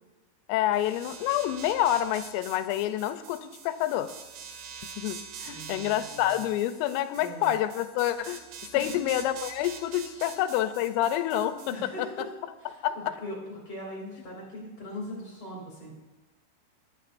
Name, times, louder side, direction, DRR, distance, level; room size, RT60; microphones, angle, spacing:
voice 1, 0.5-4.1 5.0-8.4 8.7-12.1 12.8-13.2, left 12 dB, 85° left, 11 dB, 3.2 m, -28 dB
sound 1, 0.7-11.7, right 7 dB, 85° right, 3.8 m, -44 dB
voice 2, 5.4-6.3 7.2-7.5 8.7-9.0 10.1-10.3 11.7-12.3 12.6-15.9, equal, 35° left, -4 dB, 2.9 m, -40 dB
18.5 x 11.5 x 2.6 m, 1.2 s
omnidirectional pair, 5.8 m